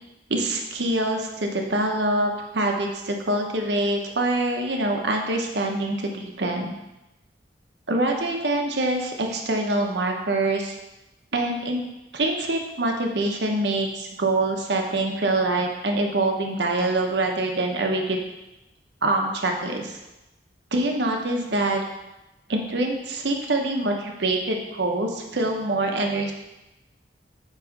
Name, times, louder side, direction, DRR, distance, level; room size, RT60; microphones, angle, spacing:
voice 1, 0.3-6.7 7.9-10.8 11.3-11.8 12.1-18.2 19.0-20.0 20.7-21.8 22.5-26.3, right 2 dB, 75° right, 2 dB, 0.9 m, -25 dB
7.4 x 3.1 x 5.1 m, 0.97 s
head